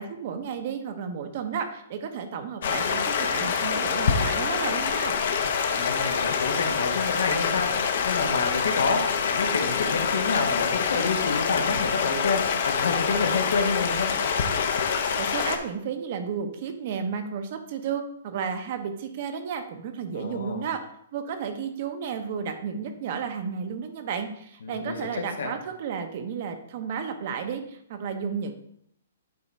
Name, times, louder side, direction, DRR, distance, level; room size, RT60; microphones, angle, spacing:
voice 1, 0.0-5.2 15.2-20.8 21.1-28.5, right 6 dB, 45° right, 7 dB, 0.8 m, -32 dB
Stream, 2.6-15.6, left 6 dB, 55° left, 0.8 m, -26 dB
voice 2, 5.7-7.7 8.0-14.1 20.1-20.6 24.6-25.5, left 4 dB, 80° left, 4 dB, 1.3 m, -28 dB
8.5 x 3.5 x 4.2 m, 0.71 s
hypercardioid pair, 160°, 0 cm